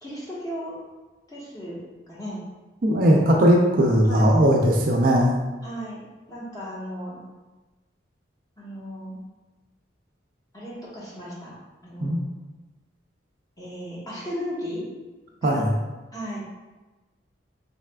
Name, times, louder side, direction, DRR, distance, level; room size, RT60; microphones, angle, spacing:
voice 1, 0.0-0.7 1.3-1.8 2.1-2.4 4.0-4.5 5.6-6.0 6.3-7.2 8.6-9.2 10.5-11.5 11.8-12.2 13.6-14.8 15.4-15.6 16.1-16.4, equal, 20° left, -7 dB, 1.0 m, -35 dB
voice 2, 2.8-5.4 12.0-12.2 15.4-15.7, equal, 50° right, 0 dB, 0.4 m, -19 dB
4.1 x 3.3 x 2.2 m, 1.2 s
head